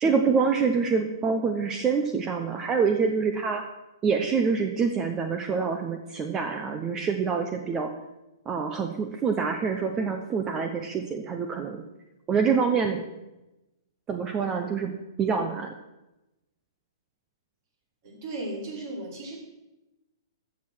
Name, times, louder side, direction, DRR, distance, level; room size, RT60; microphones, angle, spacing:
voice 1, 0.0-3.6 4.0-7.9 8.5-11.8 12.3-13.1 14.1-14.9 15.2-15.7, right 5 dB, 20° right, 6 dB, 0.9 m, -26 dB
voice 2, 18.0-19.4, right 2 dB, 50° right, -2 dB, 5.3 m, -36 dB
14.5 x 6.6 x 6.2 m, 0.99 s
hypercardioid pair, 120°, 2 cm